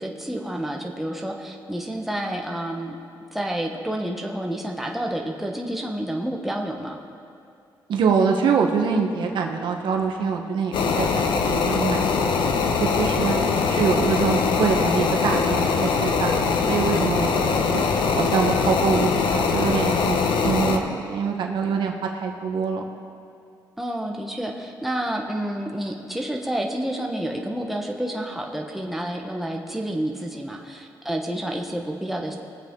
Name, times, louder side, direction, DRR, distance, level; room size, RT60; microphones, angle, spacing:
voice 1, 0.0-3.0 3.3-7.0 13.3-13.7 23.8-32.4, right 1 dB, ahead, 0 dB, 1.0 m, -29 dB
voice 2, 7.9-12.4 12.8-13.3 13.7-20.2 20.4-22.8, right 5 dB, 75° right, 3 dB, 1.1 m, -24 dB
sound 1, 10.7-20.8, left 5 dB, 80° left, 0.9 m, -22 dB
20.5 x 7.6 x 3.8 m, 2.5 s
cardioid pair, 130°, 8 cm